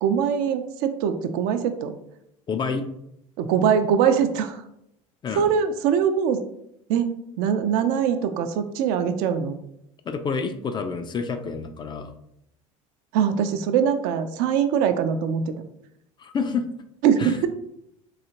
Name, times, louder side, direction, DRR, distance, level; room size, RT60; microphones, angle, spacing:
voice 1, 0.0-1.9 3.4-4.6 5.4-6.4 6.9-9.6 13.1-15.5 17.0-17.5, right 7 dB, 60° right, 8 dB, 0.4 m, -22 dB
voice 2, 2.5-2.9 5.2-5.5 10.1-12.1 16.2-16.7 17.2-17.4, left 5 dB, 25° left, 8 dB, 0.4 m, -28 dB
3.9 x 2.7 x 2.9 m, 0.78 s
hypercardioid pair, 80°, 17 cm